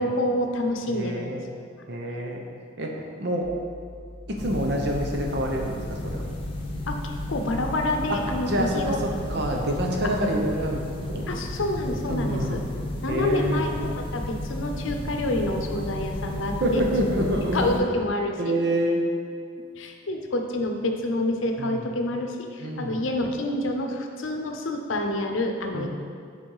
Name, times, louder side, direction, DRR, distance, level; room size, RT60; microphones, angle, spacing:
voice 1, 0.0-1.4 1.7-1.8 6.9-9.0 11.3-12.6 13.0-16.8 17.5-18.6 19.8-25.9, left 1 dB, 80° left, 4 dB, 0.7 m, -28 dB
voice 2, 0.9-1.5 1.9-2.4 2.8-2.9 3.2-3.5 4.3-6.3 8.1-10.8 11.1-11.3 12.1-12.7 13.1-13.7 16.6-17.8 18.4-19.0 21.6-21.9 22.6-23.0 25.7-25.9, equal, 55° right, 0 dB, 0.8 m, -27 dB
sound 1, 3.4-10.2, left 1 dB, 80° right, 1.6 m, -44 dB
sound 2, 4.4-17.8, left 1 dB, 25° left, 0.9 m, -33 dB
6.2 x 4.3 x 4.8 m, 2.2 s
head